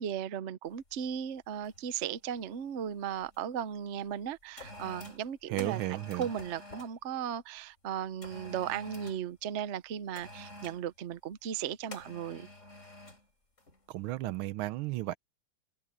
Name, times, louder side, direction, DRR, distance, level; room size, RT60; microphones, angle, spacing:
voice 1, 0.0-12.5, right 9 dB, 55° right, 0.7 m, -36 dB
sound 1, 0.8-1.0 1.6-1.9 2.2-3.4 4.0-7.0 8.2-9.3 10.1-10.9 11.9-13.3 13.6-13.8, left 1 dB, 35° left, 4.7 m, -49 dB
voice 2, 5.5-6.3 13.9-15.2, right 17 dB, 80° right, 1.5 m, -33 dB
omnidirectional pair, 2.3 m